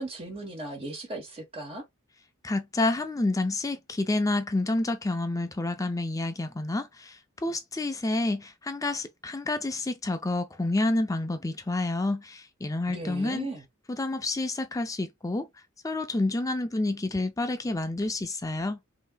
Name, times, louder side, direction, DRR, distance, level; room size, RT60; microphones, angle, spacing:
voice 1, 0.0-1.8 12.9-13.6, right 2 dB, 25° right, 1.2 m, -36 dB
voice 2, 2.4-13.5 14.0-18.8, left 2 dB, 15° left, 0.4 m, -29 dB
5.4 x 2.8 x 2.2 m
head